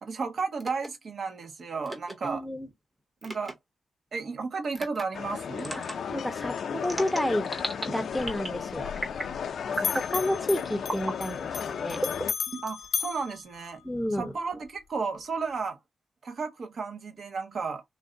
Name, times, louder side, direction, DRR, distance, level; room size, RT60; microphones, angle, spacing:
voice 1, 0.0-2.4 3.2-3.5 4.1-5.8 12.6-13.8 14.2-15.8 16.2-17.8, right 4 dB, 55° right, 0.8 m, -33 dB
sound 1, 0.6-0.9 1.8-2.1 3.2-3.5 4.7-5.0 5.6-5.9 6.8-7.8 8.2-8.6 9.0-9.3 9.7-10.1 10.8-11.1 12.0-12.9, right 1 dB, 25° right, 0.9 m, -35 dB
voice 2, 2.2-2.7 5.8-7.5 7.9-8.9 9.8-12.0 13.8-14.3, left 1 dB, ahead, 0.6 m, -31 dB
sound 2, 5.1-12.3, left 7 dB, 70° left, 0.4 m, -34 dB
Bell, 8.1-9.5 9.7-14.2, left 7 dB, 85° left, 0.8 m, -36 dB
3.2 x 2.5 x 3.8 m
wide cardioid pair, 120°, 0 cm